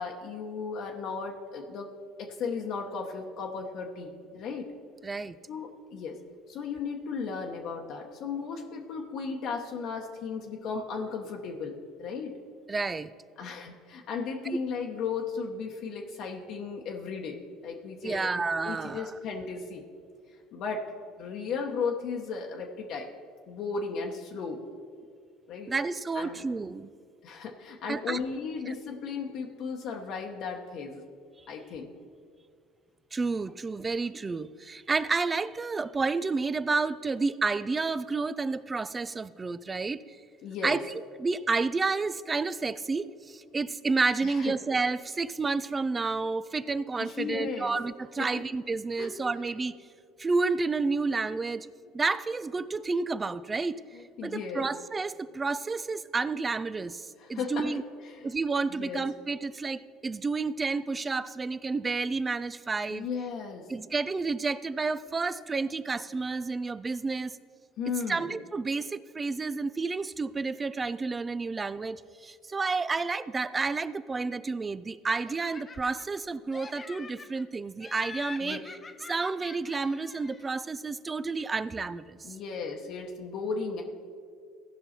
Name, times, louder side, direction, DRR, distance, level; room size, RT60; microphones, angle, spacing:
voice 1, 0.0-1.9 2.2-4.7 5.5-6.2 6.5-12.4 13.4-18.3 18.6-19.8 20.5-20.9 21.2-23.1 23.5-24.6 25.5-25.7 26.1-26.4 27.2-31.0 31.5-31.9 40.4-40.8 44.2-44.5 47.0-47.7 48.2-48.3 49.0-49.1 53.9-54.7 57.2-57.8 58.1-58.2 58.7-59.0 62.9-63.7 67.8-68.3 78.4-78.6 82.2-83.8, left 5 dB, 60° left, 1 dB, 1.0 m, -35 dB
voice 2, 5.0-5.4 12.7-13.1 18.0-19.1 25.7-26.9 27.9-28.2 28.7-28.8 33.1-40.2 40.6-49.7 50.2-51.7 51.9-53.8 54.2-57.8 58.2-63.1 63.7-67.4 68.1-78.6 79.1-82.3, right 4 dB, 25° right, 16 dB, 0.4 m, -30 dB
Laughter, 75.1-76.2 76.5-77.4 77.8-80.6, left 4 dB, 30° left, 0.6 m, -45 dB
16.0 x 5.4 x 4.3 m, 2.1 s
supercardioid pair, 90°, 0 cm